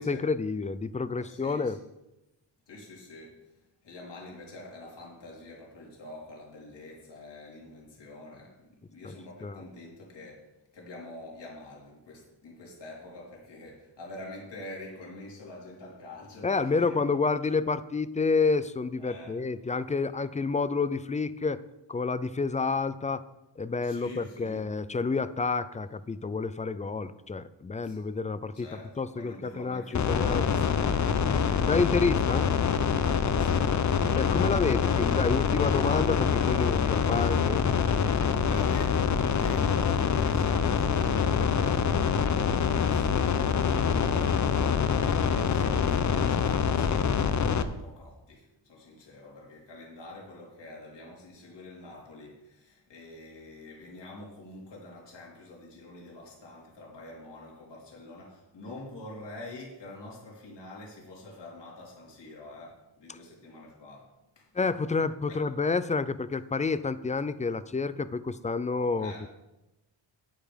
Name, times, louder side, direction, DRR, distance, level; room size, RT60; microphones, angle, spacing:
voice 1, 0.0-1.8 9.0-9.1 9.4-9.6 16.4-21.6 21.9-23.3 23.6-28.7 29.0-30.5 31.7-32.5 34.1-37.6 64.5-69.1, left 4 dB, 20° left, 15 dB, 0.3 m, -29 dB
voice 2, 1.2-1.8 2.7-16.9 19.0-19.4 23.8-24.7 27.8-28.0 28.5-31.7 33.2-33.8 38.4-64.5 65.3-65.4 69.0-69.3, left 2 dB, 60° left, -3 dB, 3.5 m, -46 dB
sound 1, 29.9-47.6, left 6 dB, 40° left, 0.7 m, -25 dB
9.3 x 9.0 x 5.1 m, 0.96 s
wide cardioid pair, 130°, 46 cm